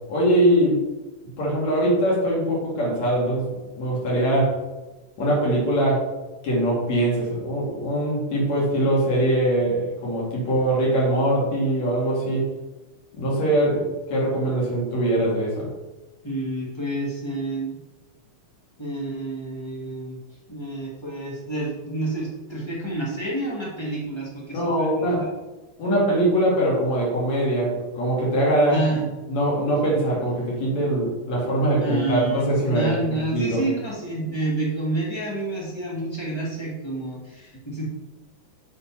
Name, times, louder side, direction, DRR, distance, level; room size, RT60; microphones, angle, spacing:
voice 1, 0.1-0.8 1.4-3.5 3.8-4.6 5.2-6.1 6.4-12.5 13.1-15.7 24.5-25.2 25.8-28.8 29.3-33.6, right 1 dB, 65° left, -4 dB, 3.4 m, -22 dB
voice 2, 16.2-17.8 18.8-20.2 20.5-25.3 28.7-29.1 31.8-37.8, right 2 dB, 30° left, -4 dB, 0.5 m, -29 dB
6.5 x 4.3 x 5.8 m, 1.1 s
omnidirectional pair, 3.4 m